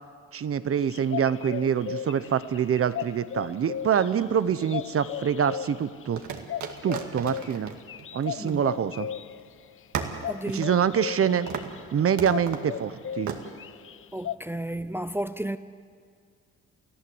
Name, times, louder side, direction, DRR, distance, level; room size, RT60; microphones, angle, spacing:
voice 1, 0.3-6.2 6.8-7.7 8.1-9.1 10.5-11.5 11.9-13.3, right 8 dB, 50° right, 0.9 m, -25 dB
sound 1, 0.8-14.4, left 10 dB, 45° left, 0.6 m, -37 dB
sound 2, 4.1-5.0 6.2-9.1 9.4-9.5 9.9-11.2 11.5-11.8 12.2-12.7 13.3-13.4, right 7 dB, 70° right, 2.1 m, -36 dB
voice 2, 10.3-10.6 14.1-15.6, right 1 dB, 5° right, 0.6 m, -32 dB
29.5 x 15.0 x 8.0 m
cardioid pair, 90°, 30 cm